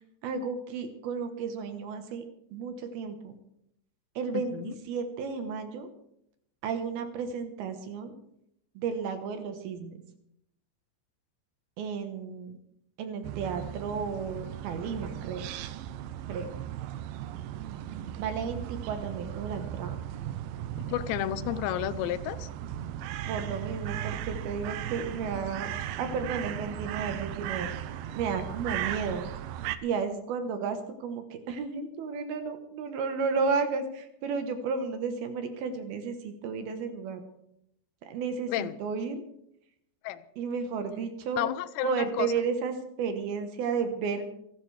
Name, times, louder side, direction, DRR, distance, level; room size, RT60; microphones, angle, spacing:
voice 1, 0.2-2.2 2.5-3.4 4.2-5.9 6.6-8.2 8.8-10.0 11.8-12.6 13.0-15.5 16.3-16.5 18.2-20.0 23.3-25.7 26.0-27.7 28.1-29.3 29.8-37.2 38.0-39.2 40.4-41.5 41.8-44.3, right 5 dB, 70° right, 7 dB, 2.8 m, -33 dB
voice 2, 4.3-4.7 20.8-22.5 38.5-38.8 40.0-40.2 41.4-42.3, left 13 dB, 85° left, 14 dB, 2.9 m, -31 dB
sound 1, 13.2-29.8, right 11 dB, 90° right, 2.0 m, -37 dB
28.5 x 10.5 x 3.3 m, 0.76 s
omnidirectional pair, 5.0 m